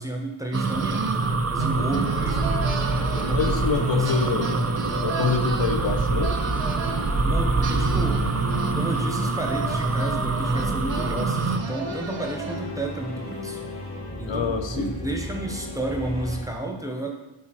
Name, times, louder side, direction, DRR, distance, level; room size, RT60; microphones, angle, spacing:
voice 1, 0.0-2.8 3.1-4.3 7.2-8.3 8.7-13.7 14.2-17.1, right 2 dB, 5° right, 1 dB, 0.9 m, -32 dB
sound 1, 0.5-11.6, right 3 dB, 35° right, 0.5 m, -25 dB
sound 2, 0.5-3.8 4.0-7.1 7.6-12.9, right 5 dB, 70° right, 0.7 m, -34 dB
sound 3, 1.7-16.4, left 2 dB, 35° left, 1.9 m, -35 dB
voice 2, 3.3-4.7 5.0-6.3 14.3-15.0, left 4 dB, 75° left, 5 dB, 0.7 m, -25 dB
8.2 x 2.8 x 4.4 m, 0.99 s
wide cardioid pair, 40°, 46 cm